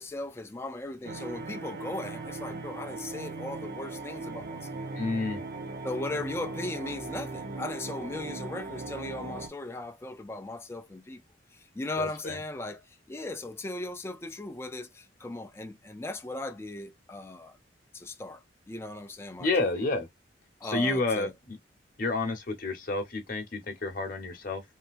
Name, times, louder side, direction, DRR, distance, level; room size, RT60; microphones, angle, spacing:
voice 1, 0.0-4.7 5.8-11.2 11.5-17.6 17.9-19.8 20.6-21.3, left 2 dB, 15° left, 0.3 m, -38 dB
sound 1, 1.0-9.5, right 3 dB, 55° right, 0.7 m, -38 dB
voice 2, 4.9-5.4 12.0-12.4 19.4-20.1 20.6-21.6 22.0-24.6, left 3 dB, 50° left, 0.9 m, -30 dB
3.3 x 2.7 x 2.4 m
head